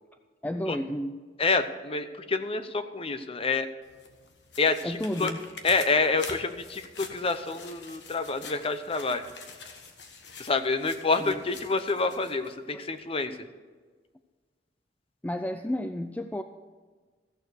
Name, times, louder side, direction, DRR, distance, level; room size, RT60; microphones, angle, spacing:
voice 1, 0.4-1.2 4.8-5.5 11.2-11.4 12.7-12.8 13.3-13.4 15.2-16.4, left 1 dB, 10° left, 8 dB, 0.4 m, -32 dB
voice 2, 1.4-3.7 4.6-5.3 5.6-9.3 10.4-13.4, left 3 dB, 35° left, 10 dB, 0.8 m, -27 dB
sound 1, 3.8-12.6 13.0-13.1, left 4 dB, 70° left, 1.4 m, -45 dB
14.5 x 6.8 x 6.4 m, 1.5 s
head